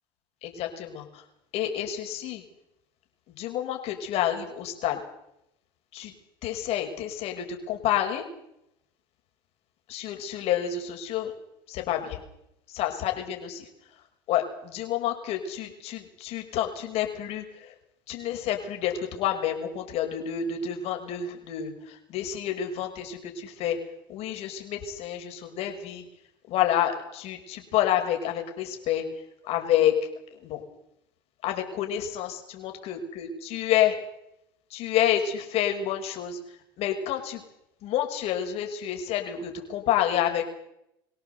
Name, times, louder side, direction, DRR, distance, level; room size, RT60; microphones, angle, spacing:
voice 1, 0.4-1.2 1.5-2.4 3.4-5.0 5.9-6.1 6.4-8.2 9.9-11.3 11.7-12.2 12.7-13.7 14.3-17.7 18.1-23.8 24.1-26.1 26.5-29.0 29.4-29.9 30.4-30.6 31.4-33.9 34.7-36.4 36.8-37.4 37.8-40.5, left 10 dB, 60° left, 4 dB, 5.8 m, -29 dB
24.5 x 17.5 x 8.1 m, 0.80 s
supercardioid pair, 85°, 12 cm